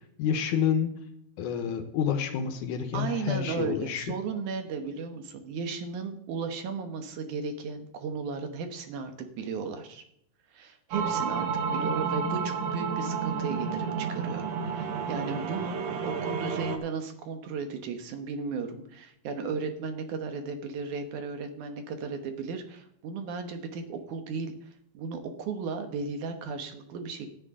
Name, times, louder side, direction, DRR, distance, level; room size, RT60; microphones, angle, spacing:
voice 1, 0.2-0.9 1.4-4.1, left 8 dB, 75° left, 7 dB, 1.9 m, -28 dB
voice 2, 2.9-10.0 10.5-14.5 14.7-27.3, right 5 dB, 65° right, 7 dB, 2.1 m, -35 dB
sound 1, 10.9-16.8, right 6 dB, 80° right, 1.5 m, -31 dB
14.0 x 11.0 x 3.7 m, 0.72 s
omnidirectional pair, 4.7 m